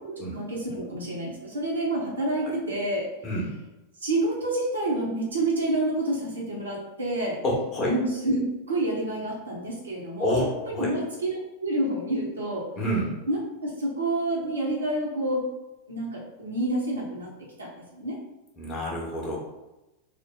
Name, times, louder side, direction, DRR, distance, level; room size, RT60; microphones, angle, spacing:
voice 1, 0.0-3.1 4.0-7.4 7.8-12.6 13.3-15.5 15.9-17.3 17.6-18.2, right 1 dB, 75° right, -4 dB, 1.1 m, -28 dB
voice 2, 7.4-7.9 10.2-10.5 10.7-10.9 12.8-13.1 18.6-19.4, equal, 30° left, -4 dB, 1.3 m, -27 dB
3.7 x 2.1 x 3.7 m, 0.98 s
figure-of-eight pair, 90°, 0 cm